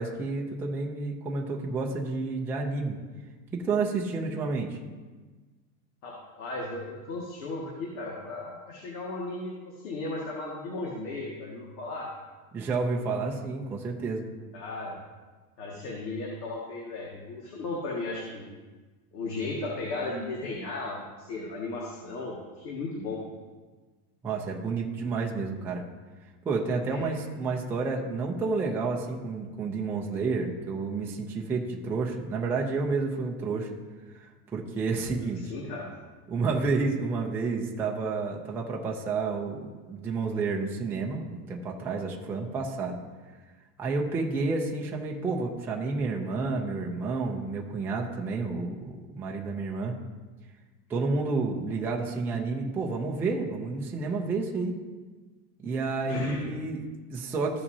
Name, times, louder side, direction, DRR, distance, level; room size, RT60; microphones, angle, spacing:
voice 1, 0.0-3.0 3.5-4.8 12.5-14.3 24.2-25.8 26.4-33.8 34.1-35.5 36.3-43.0 43.8-50.0 50.9-54.7 55.6-57.6, right 4 dB, 5° right, -1 dB, 0.4 m, -30 dB
voice 2, 6.0-12.1 14.5-15.0 15.6-18.4 19.1-23.2 26.9-27.1 35.2-35.9 56.1-56.5, left 2 dB, 90° left, -3 dB, 1.9 m, -35 dB
14.5 x 5.7 x 2.7 m, 1.3 s
supercardioid pair, 150°, 45 cm